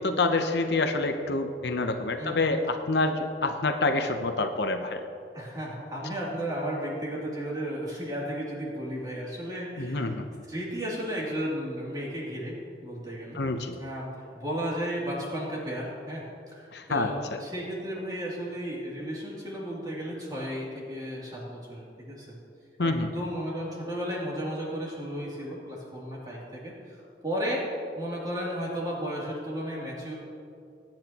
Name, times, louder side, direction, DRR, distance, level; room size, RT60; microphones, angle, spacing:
voice 1, 0.0-5.0 9.8-10.3 13.3-13.7 16.7-17.4 22.8-23.1, left 2 dB, 70° left, 6 dB, 0.8 m, -27 dB
voice 2, 5.3-10.2 10.5-13.4 13.8-22.4 22.8-27.6 27.9-30.1, equal, 20° right, -5 dB, 2.8 m, -34 dB
21.5 x 8.9 x 3.0 m, 2.4 s
head